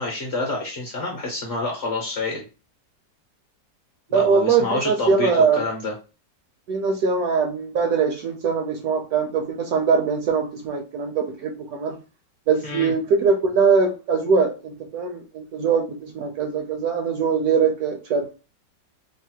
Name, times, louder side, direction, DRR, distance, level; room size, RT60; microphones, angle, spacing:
voice 1, 0.0-2.5 4.1-5.9 12.6-12.9, left 2 dB, 50° left, 0.9 m, -28 dB
voice 2, 4.1-5.6 6.7-12.0 12.5-18.3, right 5 dB, 70° right, 0.9 m, -22 dB
3.2 x 2.0 x 2.8 m
omnidirectional pair, 1.9 m